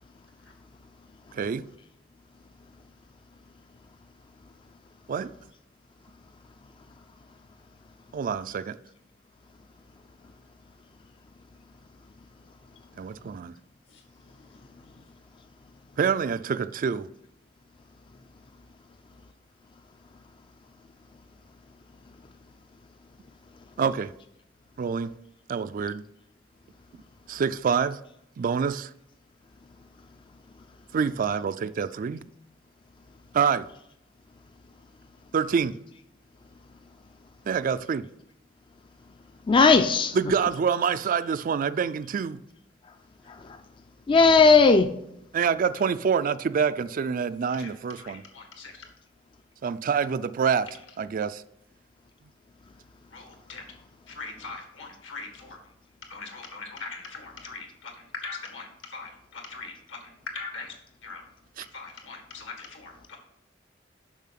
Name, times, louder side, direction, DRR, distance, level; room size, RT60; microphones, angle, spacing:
voice 1, 1.3-1.7 5.1-5.3 8.1-8.8 13.0-13.5 16.0-17.1 23.8-24.1 24.8-25.1 25.5-26.0 27.3-28.0 28.4-28.9 30.9-32.2 33.3-33.7 35.3-35.8 37.5-38.1 40.1-42.4 45.3-48.2 49.6-50.7 51.0-51.4 61.6-61.7, right 6 dB, 45° right, 0.3 m, -26 dB
voice 2, 14.3-14.7 47.5-48.7 53.1-53.7 54.1-55.6 56.1-60.8 61.0-61.2 61.7-63.2, left 4 dB, 80° left, 1.9 m, -41 dB
voice 3, 39.5-40.5 43.3-43.6 44.1-44.9, left 4 dB, 25° left, 0.3 m, -18 dB
7.3 x 5.7 x 5.8 m
head